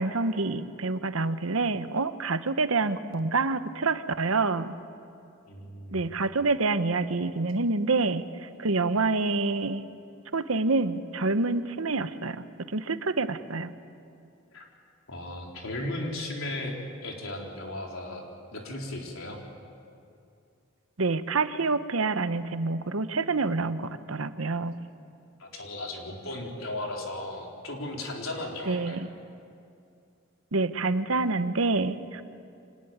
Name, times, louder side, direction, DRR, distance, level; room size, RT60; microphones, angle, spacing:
voice 1, 0.0-4.7 5.9-9.8 10.3-13.7 21.0-24.7 28.7-29.1 30.5-32.2, right 3 dB, 90° right, 11 dB, 1.0 m, -27 dB
voice 2, 5.5-6.0 14.5-14.6 15.1-16.8 17.0-18.2 18.5-19.4 25.4-29.0, left 1 dB, 75° left, 0 dB, 4.1 m, -36 dB
25.5 x 19.0 x 9.3 m, 2.4 s
head